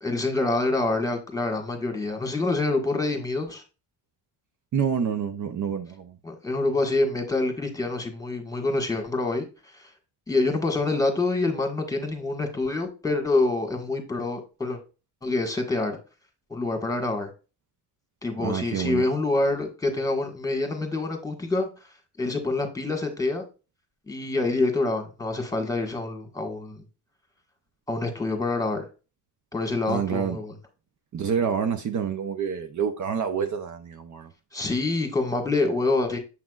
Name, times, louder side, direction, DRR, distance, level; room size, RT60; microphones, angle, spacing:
voice 1, 0.0-3.6 6.2-9.4 9.7-9.9 10.3-14.8 15.2-16.0 16.5-17.3 18.2-21.7 22.2-23.4 24.1-26.8 27.9-28.9 29.5-30.5 34.5-36.2, left 2 dB, 10° left, 1.6 m, -26 dB
voice 2, 4.7-6.2 18.4-19.1 29.9-30.4 31.1-34.3, right 7 dB, 45° right, 0.7 m, -27 dB
7.5 x 5.9 x 2.4 m
cardioid pair, 125°, 43 cm